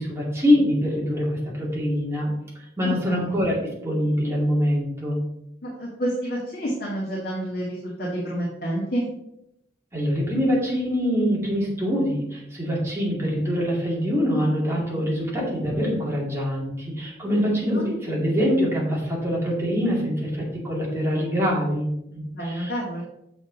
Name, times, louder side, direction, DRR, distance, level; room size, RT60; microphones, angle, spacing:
voice 1, 0.0-2.3 2.8-5.2 9.9-22.7, equal, 15° right, -4 dB, 2.5 m, -24 dB
voice 2, 2.8-3.3 5.6-9.1 17.7-17.8 22.3-23.0, right 1 dB, 55° left, -5 dB, 2.0 m, -29 dB
7.2 x 6.5 x 4.0 m, 0.80 s
head